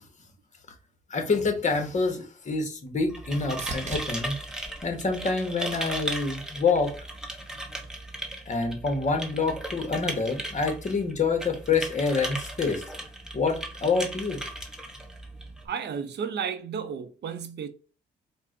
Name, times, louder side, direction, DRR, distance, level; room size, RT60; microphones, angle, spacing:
voice 1, 1.1-4.4 4.8-6.9 8.5-12.8 13.3-14.4, left 4 dB, 35° left, 1.1 m, -27 dB
sound 1, 2.3-6.1 6.6-7.2 15.0-15.1, right 3 dB, 35° right, 1.0 m, -43 dB
sound 2, 3.0-15.7, right 1 dB, 5° right, 0.9 m, -37 dB
voice 2, 15.7-17.7, right 7 dB, 60° right, 0.7 m, -33 dB
4.5 x 2.2 x 3.7 m
cardioid pair, 90°, 20 cm